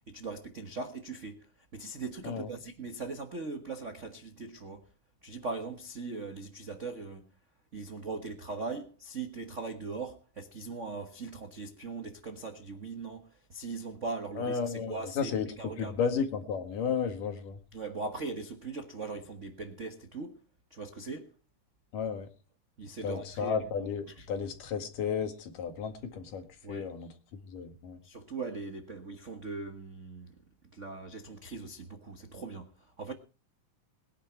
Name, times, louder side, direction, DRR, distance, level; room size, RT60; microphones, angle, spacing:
voice 1, 0.1-4.9 5.2-7.3 7.7-16.0 17.7-20.4 20.7-21.3 22.8-23.6 24.2-24.3 26.6-26.9 28.0-30.4 30.7-33.1, right 3 dB, 65° right, 0.7 m, -40 dB
voice 2, 14.4-15.5 15.8-17.6 21.9-22.3 23.0-27.1 27.5-28.0, left 6 dB, 85° left, 3.5 m, -33 dB
21.0 x 10.0 x 4.6 m
omnidirectional pair, 3.7 m